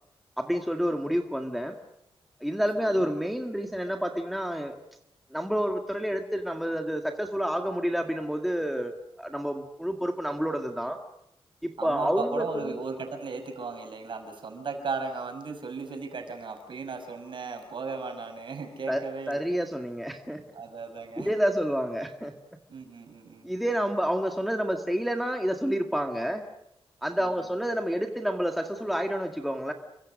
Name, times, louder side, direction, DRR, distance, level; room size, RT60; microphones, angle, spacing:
voice 1, 0.4-1.7 2.4-4.8 5.3-11.0 11.6-12.8 18.9-19.0 19.3-20.4 21.2-22.3 23.4-26.4 27.0-29.7, equal, ahead, 4 dB, 1.8 m, -29 dB
voice 2, 11.8-19.4 20.5-21.3 22.7-23.5 27.2-27.5, right 4 dB, 55° right, 5 dB, 5.8 m, -36 dB
29.5 x 24.0 x 6.4 m, 0.78 s
wide cardioid pair, 120°, 10 cm